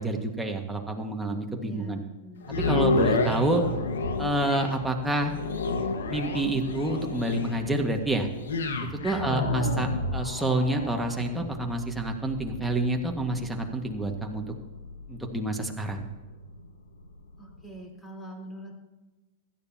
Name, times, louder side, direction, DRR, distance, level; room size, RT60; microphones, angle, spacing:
voice 1, 0.0-2.0 2.5-3.6 4.2-5.3 6.1-8.3 9.0-14.5 15.1-16.0, right 1 dB, 5° right, 1 dB, 1.9 m, -28 dB
voice 2, 1.6-2.5 9.0-9.6 17.4-18.7, right 2 dB, 10° left, -1 dB, 4.1 m, -42 dB
sound 1, 2.4-16.7 17.2-17.3, left 3 dB, 90° left, 1.6 m, -31 dB
16.0 x 12.5 x 3.0 m, 1.2 s
hypercardioid pair, 120°, 0 cm